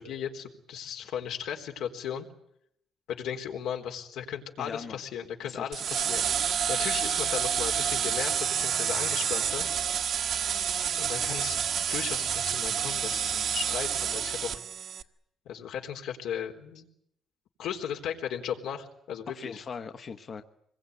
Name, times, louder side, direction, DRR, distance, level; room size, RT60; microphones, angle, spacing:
voice 1, 0.0-2.3 3.1-6.3 6.7-9.7 11.0-11.6 11.9-14.6 15.5-16.9 17.6-19.6, left 8 dB, 90° left, 3 dB, 3.9 m, -36 dB
voice 2, 4.6-5.0 5.4-5.7 11.2-11.4 19.3-20.4, left 5 dB, 40° left, 7 dB, 1.1 m, -40 dB
sound 1, 5.7-15.0, right 8 dB, 55° right, 1.3 m, -29 dB
26.0 x 22.0 x 9.6 m, 0.74 s
cardioid pair, 155°, 0 cm